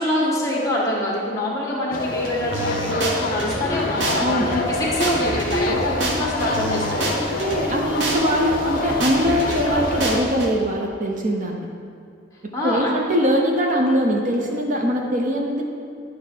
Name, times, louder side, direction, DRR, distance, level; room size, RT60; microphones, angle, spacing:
voice 1, 0.0-4.2 4.5-7.4 12.5-12.9, left 1 dB, 20° left, -4 dB, 1.4 m, -25 dB
sound 1, 1.9-10.2, left 2 dB, 50° left, 0.7 m, -26 dB
sound 2, 2.5-3.6 4.0-4.2 4.5-7.6 8.0-8.2 8.5-10.5, right 2 dB, 80° right, 1.1 m, -27 dB
voice 2, 4.2-4.5 7.3-11.7 12.6-15.6, equal, 45° right, 1 dB, 0.7 m, -22 dB
10.0 x 3.4 x 6.6 m, 2.3 s
head